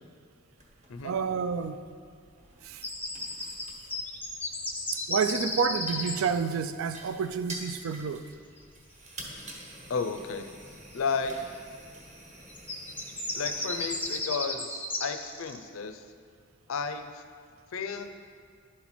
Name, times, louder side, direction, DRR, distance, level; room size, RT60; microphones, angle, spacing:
sound 1, 0.6-14.2, right 1 dB, 35° right, 1.1 m, -48 dB
voice 1, 1.0-1.8 2.6-2.9 5.1-8.3, right 6 dB, 85° right, 0.4 m, -29 dB
sound 2, 2.8-6.1 10.0-10.1 12.5-15.6, left 2 dB, 10° left, 0.6 m, -33 dB
voice 2, 9.9-10.5 10.9-11.3 13.3-16.0 16.7-17.2 17.7-18.2, left 5 dB, 80° left, 0.5 m, -33 dB
11.0 x 4.3 x 4.3 m
head